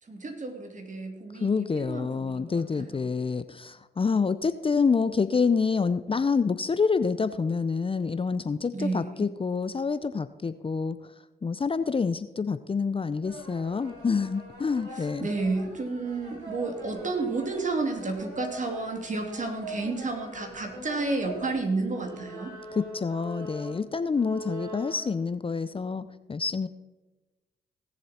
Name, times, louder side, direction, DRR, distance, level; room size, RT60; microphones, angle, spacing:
voice 1, 0.0-3.1 8.7-9.3 14.9-22.5, right 3 dB, 45° right, 4 dB, 2.8 m, -31 dB
voice 2, 1.4-11.0 11.4-15.3 22.9-26.7, left 5 dB, 30° left, 13 dB, 0.6 m, -27 dB
sound 1, 13.2-21.5 21.9-25.1, right 1 dB, 75° right, 4.9 m, -42 dB
17.5 x 7.4 x 4.3 m, 1.1 s
supercardioid pair, 45°, 18 cm